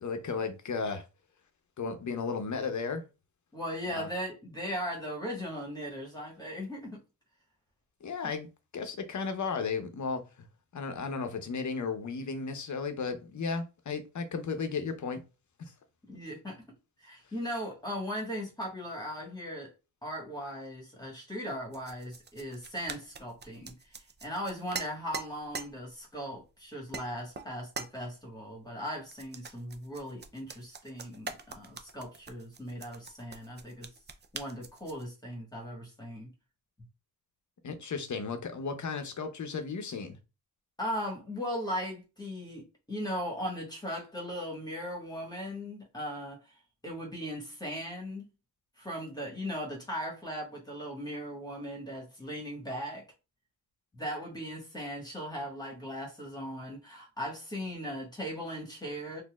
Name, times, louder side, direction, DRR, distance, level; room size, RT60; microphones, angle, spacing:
voice 1, 0.0-1.0 1.8-3.0 3.9-4.1 8.0-8.5 8.7-10.2 10.7-15.2 37.6-40.2, left 5 dB, 50° left, 0.8 m, -34 dB
voice 2, 3.5-7.0 8.2-8.3 16.1-16.6 17.0-19.7 20.0-23.9 24.2-33.9 34.3-36.3 40.8-46.5 46.8-48.3 48.8-53.0 53.9-59.2, equal, 10° left, 1.3 m, -38 dB
sound 1, 21.7-25.7 26.3-26.5 26.9-27.1 27.3-27.9 29.1-35.0, right 5 dB, 30° right, 0.5 m, -43 dB
4.2 x 2.7 x 2.3 m
cardioid pair, 85°, 36 cm